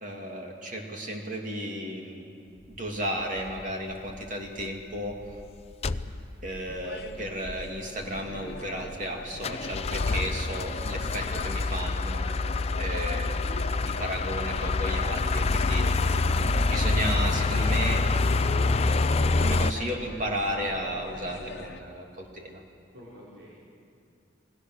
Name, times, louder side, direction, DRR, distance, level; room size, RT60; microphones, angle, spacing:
voice 1, 0.0-2.3 2.7-5.2 6.4-13.5 13.8-16.2 16.6-18.1 19.4-22.6, equal, 40° right, 1 dB, 2.8 m, -34 dB
sound 1, 3.4-3.6 4.1-4.3 4.6-4.7 4.9-5.4 5.8-6.6 7.0-7.1 7.2-7.7 8.2-9.1 9.4-19.7, left 3 dB, 30° left, 0.5 m, -26 dB
sound 2, 6.7-21.8, left 2 dB, 55° left, 1.3 m, -42 dB
voice 2, 22.9-23.5, equal, 70° right, -7 dB, 4.9 m, -49 dB
28.5 x 19.5 x 6.4 m, 2.4 s
head